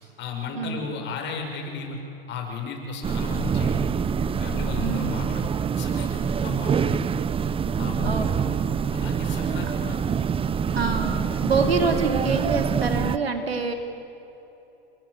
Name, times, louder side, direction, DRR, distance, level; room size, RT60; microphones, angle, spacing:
voice 1, 0.0-2.0 2.3-3.9 4.4-5.5 5.8-7.1 7.8-8.3 8.9-10.0, left 5 dB, 40° left, 3 dB, 6.2 m, -34 dB
sound 1, 3.0-13.2, right 6 dB, 20° right, 0.8 m, -25 dB
voice 2, 4.8-5.1 8.0-8.6 10.7-13.7, right 4 dB, 90° right, 5 dB, 3.2 m, -26 dB
28.5 x 22.5 x 8.4 m, 2.9 s
hypercardioid pair, 100°, 29 cm